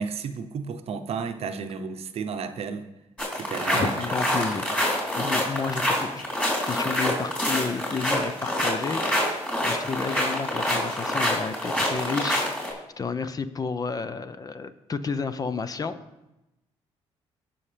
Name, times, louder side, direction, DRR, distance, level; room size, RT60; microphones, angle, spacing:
voice 1, 0.0-2.8 3.3-3.9 4.3-4.4, right 5 dB, 60° right, 9 dB, 0.8 m, -32 dB
sound 1, 3.2-12.7, left 1 dB, 10° left, 3.5 m, -26 dB
voice 2, 3.7-4.7 5.2-6.2 6.7-16.0, left 5 dB, 35° left, 12 dB, 0.7 m, -31 dB
17.0 x 5.7 x 3.4 m, 0.94 s
cardioid pair, 80°, 11 cm